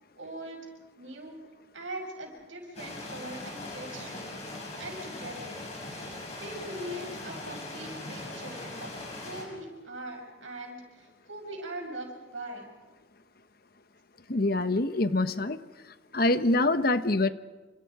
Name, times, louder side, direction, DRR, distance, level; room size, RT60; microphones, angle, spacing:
voice 1, 0.1-0.6 1.0-1.4 1.7-4.3 4.8-5.6 6.4-12.6, right 1 dB, 85° right, 0 dB, 6.6 m, -41 dB
sound 1, 2.7-9.4, left 2 dB, 35° left, 6.9 m, -40 dB
voice 2, 14.3-15.6 16.1-17.3, left 2 dB, 50° left, 11 dB, 1.1 m, -25 dB
28.5 x 27.5 x 4.9 m, 1.3 s
head